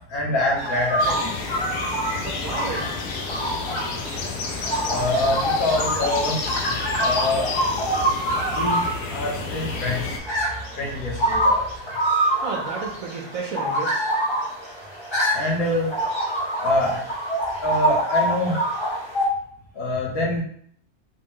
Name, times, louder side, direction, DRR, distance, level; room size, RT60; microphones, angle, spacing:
voice 1, 0.1-1.3 4.9-7.5 8.5-10.2 10.7-11.7 15.3-15.9 16.6-17.2 17.6-18.6 19.7-20.4, left 2 dB, 70° left, -2 dB, 1.4 m, -25 dB
sound 1, 0.5-19.3, right 1 dB, 45° left, 0.3 m, -26 dB
French Forest Springtime, 1.0-10.2, left 4 dB, 85° left, 1.2 m, -30 dB
voice 2, 2.2-2.9 12.4-14.0, right 4 dB, 65° right, 0 dB, 1.0 m, -32 dB
4.1 x 2.1 x 3.5 m, 0.63 s
omnidirectional pair, 1.7 m